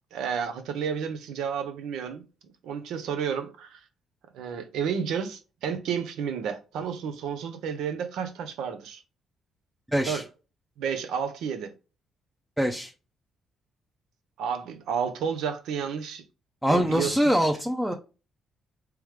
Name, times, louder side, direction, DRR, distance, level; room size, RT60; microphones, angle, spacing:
voice 1, 0.1-2.2 2.6-3.8 4.3-9.0 10.1-10.2 10.8-11.7 14.4-16.2 16.7-17.2, right 7 dB, 85° right, 0.7 m, -31 dB
voice 2, 9.9-10.2 12.6-12.9 16.6-18.0, equal, 5° right, 0.5 m, -24 dB
3.5 x 3.0 x 3.2 m
cardioid pair, 90°, 0 cm